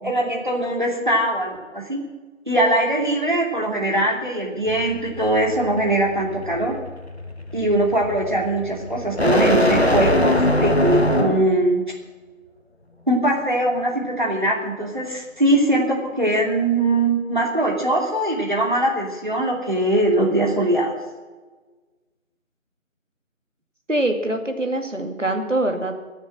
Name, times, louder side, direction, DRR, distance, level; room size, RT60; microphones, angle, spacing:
voice 1, 0.0-2.0 2.5-6.7 7.5-11.8 13.1-20.9, right 1 dB, 35° right, -1 dB, 2.8 m, -21 dB
sound 1, 4.7-11.6, left 1 dB, 50° left, 1.1 m, -22 dB
voice 2, 23.9-25.9, right 1 dB, 65° right, 4 dB, 2.4 m, -23 dB
21.5 x 7.3 x 7.6 m, 1.3 s
figure-of-eight pair, 180°, 40 cm